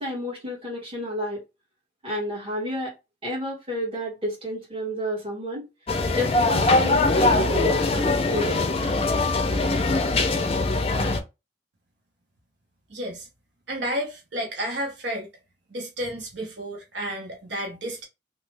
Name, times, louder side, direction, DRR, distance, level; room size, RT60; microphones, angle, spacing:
voice 1, 0.0-1.4 2.0-2.9 3.2-5.7 6.1-8.6, left 1 dB, 30° right, 1.6 m, -30 dB
sound 1, 5.9-11.2, left 2 dB, 35° left, 0.5 m, -22 dB
voice 2, 12.9-13.3 13.7-15.3 15.7-18.0, right 1 dB, 85° right, 1.0 m, -31 dB
3.0 x 2.3 x 3.3 m
head